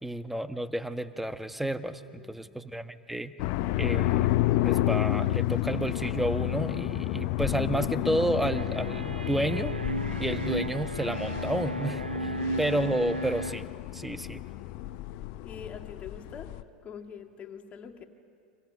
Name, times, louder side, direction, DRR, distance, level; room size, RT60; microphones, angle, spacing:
voice 1, 0.0-3.3 3.8-4.3 4.6-9.7 10.2-12.3 12.6-13.6 13.9-14.4, right 1 dB, 5° right, 11 dB, 1.2 m, -31 dB
voice 2, 2.1-2.7 15.4-18.0, left 7 dB, 30° left, 4 dB, 2.5 m, -45 dB
sound 1, 3.4-16.6, left 15 dB, 50° left, 0.9 m, -30 dB
sound 2, 8.4-13.5, right 3 dB, 90° right, 0.5 m, -35 dB
30.0 x 26.0 x 6.5 m, 2.3 s
figure-of-eight pair, 85°, 5 cm